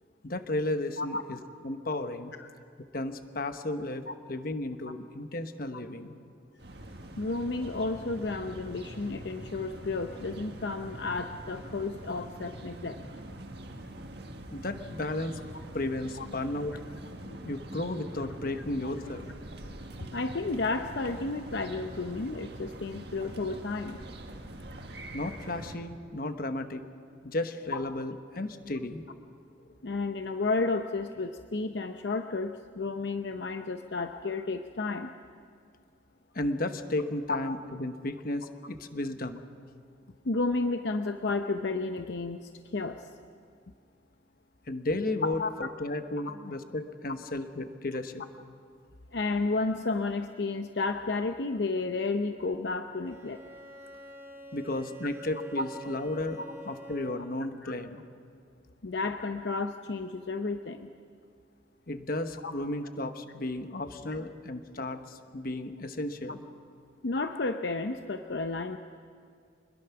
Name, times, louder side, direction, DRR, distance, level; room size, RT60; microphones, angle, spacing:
voice 1, 0.2-1.4 1.6-2.3 2.8-6.1 14.5-15.4 15.7-16.8 17.4-19.3 25.1-26.8 27.2-29.0 36.3-39.4 44.7-48.2 54.5-58.0 61.9-66.4, left 2 dB, 50° left, 8 dB, 1.2 m, -34 dB
sound 1, 6.6-25.8, right 1 dB, 60° right, 1.8 m, -44 dB
voice 2, 7.2-13.0 16.2-16.3 17.3-17.4 18.6-18.9 20.1-24.0 27.7-27.8 29.8-35.1 37.3-37.4 40.2-43.0 45.2-45.5 46.2-46.3 49.1-53.4 55.6-55.7 57.6-57.7 58.8-60.9 62.4-62.5 67.0-68.8, left 3 dB, 70° left, 7 dB, 0.7 m, -32 dB
Bowed string instrument, 53.0-57.5, right 3 dB, 15° right, 3.1 m, -46 dB
25.5 x 21.0 x 5.9 m, 2.2 s
head